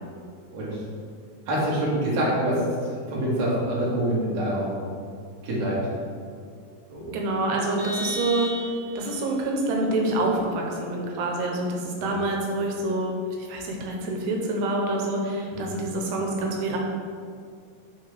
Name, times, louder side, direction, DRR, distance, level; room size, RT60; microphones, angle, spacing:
voice 1, 0.5-0.8 1.5-4.8 5.4-5.9 6.9-7.1 12.0-12.1 15.5-15.7, right 1 dB, 55° right, -7 dB, 2.3 m, -26 dB
voice 2, 7.1-8.5 9.0-16.8, right 2 dB, 85° right, 0 dB, 2.8 m, -27 dB
Vehicle horn car horn honking, 7.8-9.2, equal, 70° right, 2.5 m, -34 dB
6.0 x 5.8 x 3.3 m, 2.2 s
omnidirectional pair, 4.6 m